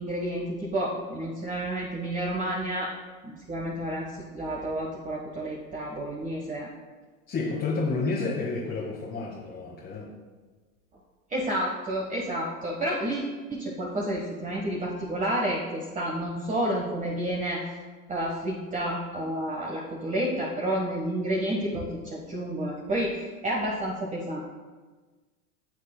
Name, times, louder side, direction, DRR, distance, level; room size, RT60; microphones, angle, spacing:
voice 1, 0.0-2.9 3.2-6.7 11.3-17.6 18.1-24.4, right 1 dB, 15° right, -3 dB, 1.3 m, -30 dB
voice 2, 7.3-10.1, left 3 dB, 25° left, -4 dB, 1.6 m, -30 dB
15.5 x 6.5 x 2.2 m, 1.4 s
hypercardioid pair, 100°, 44 cm